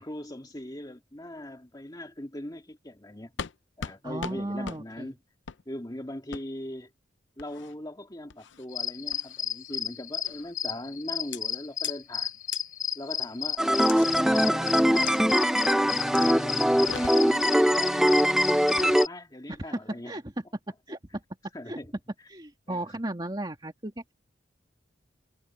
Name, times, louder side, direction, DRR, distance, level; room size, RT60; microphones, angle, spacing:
voice 1, 0.0-3.3 3.8-5.2 5.7-6.9 7.4-12.3 12.9-16.6 17.1-20.1 21.5-21.9 22.7-22.9, left 1 dB, 20° left, 2.2 m, -40 dB
sound 1, 3.4-3.5 3.8-4.4 4.6-4.8 5.5-5.6 6.3-6.4 7.4-7.7 8.3-8.6 9.1-9.4 10.2-10.5 11.3-11.4 11.8-11.9 12.5-12.6 13.9-14.1 15.1-15.2 16.1-16.3 16.7-17.4 18.6-19.0, left 6 dB, 85° left, 0.6 m, -39 dB
voice 2, 4.0-5.1 19.5-19.8 20.0-20.2 20.9-21.0 21.7-21.8 22.3-24.1, right 1 dB, 25° right, 2.7 m, -35 dB
sound 2, 8.7-19.1, left 7 dB, 50° left, 3.5 m, -32 dB
sound 3, 13.6-19.1, equal, 5° right, 0.6 m, -22 dB
head